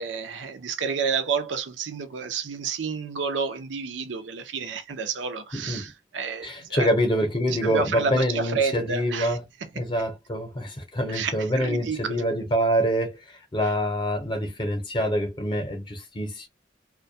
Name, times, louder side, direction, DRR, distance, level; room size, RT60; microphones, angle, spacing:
voice 1, 0.0-6.9 7.6-9.4 9.8-9.9 11.1-12.2, right 5 dB, 85° right, 0.5 m, -30 dB
voice 2, 5.5-5.9 6.4-9.4 9.7-13.2 13.5-16.5, equal, 25° left, 0.7 m, -26 dB
2.2 x 2.2 x 2.6 m
head